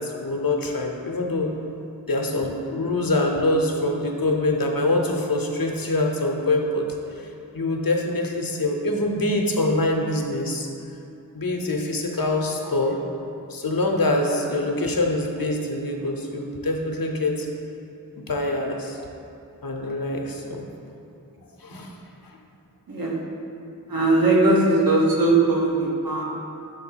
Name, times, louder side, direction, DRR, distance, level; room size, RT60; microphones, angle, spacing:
voice 1, 0.0-1.5 2.0-7.3 7.5-10.7 11.3-13.0 13.5-17.5 18.1-19.0 19.6-20.7 21.6-22.0, left 2 dB, 80° left, 1 dB, 0.7 m, -24 dB
voice 2, 22.9-23.2 23.9-26.2, right 2 dB, 80° right, -3 dB, 1.1 m, -19 dB
6.6 x 3.9 x 4.4 m, 2.7 s
wide cardioid pair, 45°, 34 cm